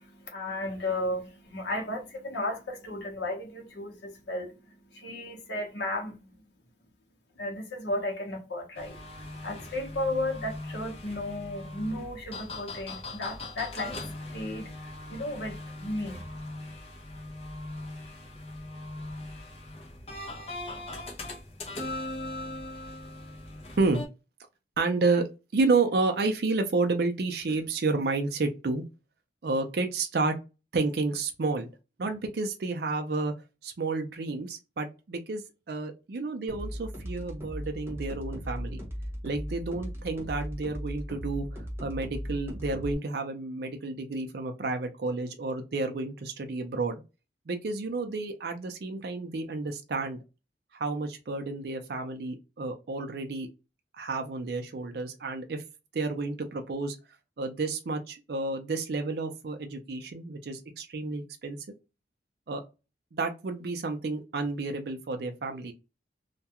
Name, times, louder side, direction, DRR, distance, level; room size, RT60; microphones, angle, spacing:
voice 1, 0.0-6.3 7.4-9.0 9.4-14.0 14.3-16.2, left 1 dB, 75° left, 0.8 m, -34 dB
sound 1, 8.7-24.1, left 2 dB, 35° left, 0.5 m, -40 dB
voice 2, 24.8-25.3 25.5-28.8 29.4-30.3 30.7-31.7 32.0-33.3 33.6-35.4 35.7-38.8 39.2-41.5 41.8-47.0 47.5-50.2 50.7-53.5 54.0-55.6 55.9-57.0 57.4-61.7 62.5-62.6 63.1-65.7, right 3 dB, 60° right, 0.4 m, -30 dB
sound 2, 36.5-42.9, equal, 15° right, 0.6 m, -37 dB
2.3 x 2.1 x 2.8 m
head